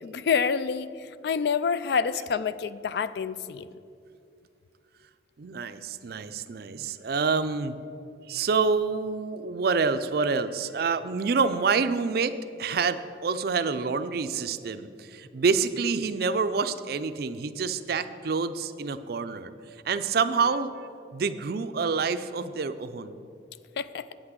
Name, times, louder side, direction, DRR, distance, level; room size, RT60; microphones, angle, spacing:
voice 1, 0.0-3.7 23.8-24.1, left 6 dB, 60° left, 15 dB, 0.3 m, -28 dB
voice 2, 5.4-7.8 8.3-19.5 19.8-20.7 21.1-23.2, right 5 dB, 55° right, 12 dB, 0.4 m, -27 dB
8.6 x 6.0 x 7.9 m, 2.5 s
head